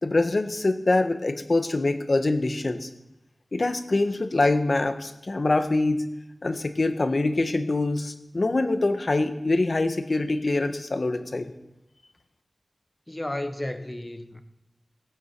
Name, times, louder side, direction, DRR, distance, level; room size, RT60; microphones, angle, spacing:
voice 1, 0.0-2.9 3.5-6.0 6.4-11.5, left 2 dB, 50° left, 8 dB, 1.4 m, -24 dB
voice 2, 13.1-14.4, left 1 dB, 20° left, 8 dB, 1.2 m, -33 dB
19.0 x 8.5 x 6.1 m, 0.89 s
wide cardioid pair, 75°, 0 cm